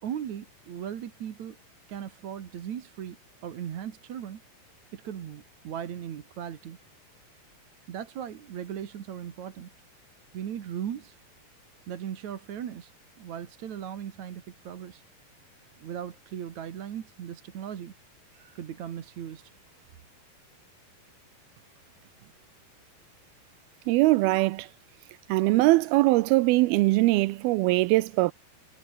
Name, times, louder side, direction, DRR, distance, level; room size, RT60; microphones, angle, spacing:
voice 1, 0.0-1.6 1.9-4.4 4.9-6.8 7.9-9.7 10.3-11.2 11.9-12.9 13.2-15.0 15.8-17.9 18.3-19.9, right 9 dB, 55° right, 2.8 m, -38 dB
voice 2, 23.9-24.7 25.3-28.3, right 20 dB, 85° right, 2.5 m, -22 dB
omnidirectional pair, 4.3 m